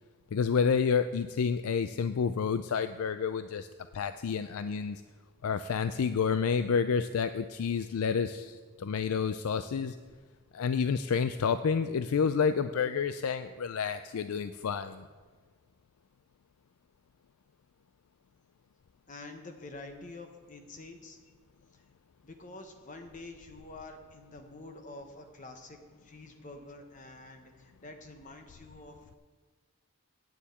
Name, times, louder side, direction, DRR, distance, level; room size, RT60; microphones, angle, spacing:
voice 1, 0.3-3.7 3.9-5.0 5.4-10.0 10.5-15.0, left 6 dB, 75° left, 10 dB, 0.4 m, -29 dB
voice 2, 19.1-21.2 22.2-29.2, left 2 dB, 35° left, 5 dB, 0.9 m, -47 dB
9.3 x 7.1 x 8.5 m, 1.5 s
head